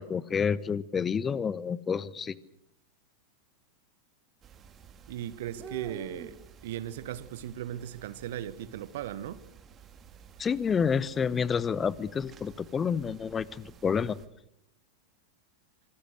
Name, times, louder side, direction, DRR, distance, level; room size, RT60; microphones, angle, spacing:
voice 1, 0.0-2.4 10.4-14.2, left 6 dB, 20° left, 1.0 m, -29 dB
sound 1, 4.4-14.3, right 7 dB, 25° right, 2.3 m, -50 dB
voice 2, 5.1-6.4 6.6-9.4, right 11 dB, 55° right, 1.3 m, -37 dB
26.5 x 25.5 x 6.6 m
figure-of-eight pair, 90°, 0 cm